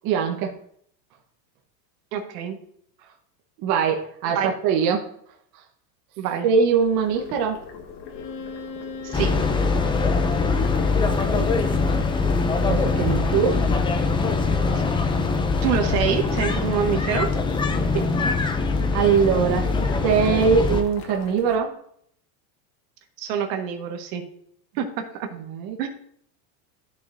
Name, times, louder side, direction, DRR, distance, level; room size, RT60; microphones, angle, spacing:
voice 1, 0.0-0.6 3.6-5.1 5.5-5.6 6.4-7.6 11.1-11.5 12.6-13.6 17.9-18.1 18.9-21.7 25.3-25.8, right 6 dB, 45° right, 2 dB, 1.2 m, -22 dB
voice 2, 2.1-2.6 4.3-4.5 6.2-6.4 9.0-9.3 14.7-14.8 15.6-17.3 23.2-24.2 24.7-24.8 25.8-25.9, right 8 dB, 75° right, 4 dB, 1.6 m, -26 dB
Boiling, 6.8-21.6, left 5 dB, 50° left, 1.6 m, -42 dB
Bowed string instrument, 8.1-14.0, left 4 dB, 80° left, 2.0 m, -40 dB
sound 1, 9.1-20.8, left 4 dB, 10° left, 0.4 m, -23 dB
14.0 x 5.3 x 2.7 m, 0.65 s
supercardioid pair, 135°, 50 cm